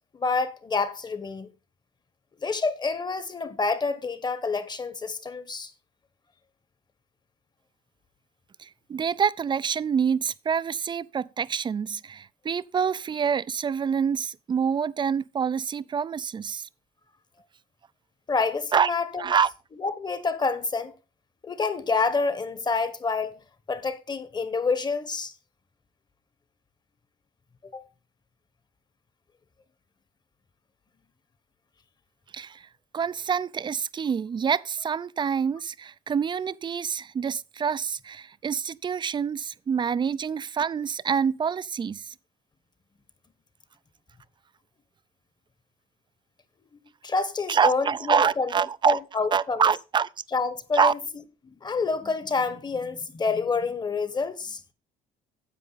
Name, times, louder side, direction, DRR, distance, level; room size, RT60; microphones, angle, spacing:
voice 1, 0.1-1.5 2.4-5.7 18.3-19.3 19.8-20.9 21.4-23.4 23.7-25.3 27.7-27.8 47.0-48.5 48.9-49.6 50.3-51.0 51.4-54.6, left 4 dB, 25° left, 1.1 m, -28 dB
voice 2, 8.6-16.7 18.7-18.9 19.2-19.5 32.3-32.7 32.9-42.1 47.5-49.0 49.3-50.1 50.7-50.9, right 7 dB, 25° right, 0.4 m, -26 dB
10.0 x 7.7 x 4.0 m
cardioid pair, 110°, 17 cm